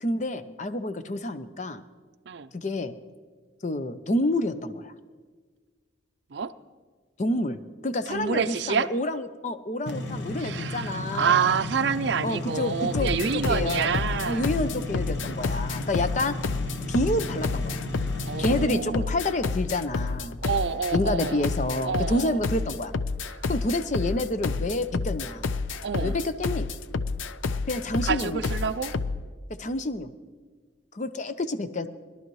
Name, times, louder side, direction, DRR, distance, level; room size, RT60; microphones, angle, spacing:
voice 1, 0.0-1.8 2.5-2.9 3.6-4.9 7.2-7.6 7.8-11.5 12.2-13.9 14.2-16.4 16.9-17.8 18.4-20.4 20.9-22.9 23.5-25.4 26.0-26.7 27.7-28.4 29.6-30.1 30.9-31.9, left 1 dB, 40° left, 11 dB, 0.6 m, -28 dB
voice 2, 8.1-8.9 10.3-14.5 18.2-19.1 20.4-21.5 21.8-22.4 23.3-23.5 25.8-26.2 28.0-29.0, right 6 dB, 65° right, 9 dB, 0.5 m, -28 dB
sound 1, 9.9-18.7, left 2 dB, 65° left, 1.0 m, -34 dB
sound 2, 12.9-29.2, left 4 dB, 85° left, 0.5 m, -30 dB
21.5 x 12.0 x 3.1 m, 1.5 s
head